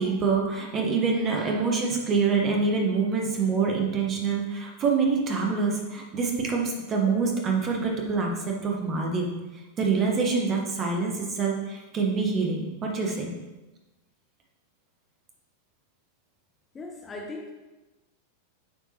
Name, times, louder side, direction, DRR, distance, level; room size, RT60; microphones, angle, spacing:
voice 1, 0.0-9.3 9.8-13.3, right 4 dB, 30° right, 0 dB, 1.2 m, -26 dB
voice 2, 16.7-17.5, left 2 dB, 20° left, 1 dB, 0.6 m, -38 dB
9.0 x 3.5 x 3.0 m, 1.1 s
figure-of-eight pair, 90°, 0 cm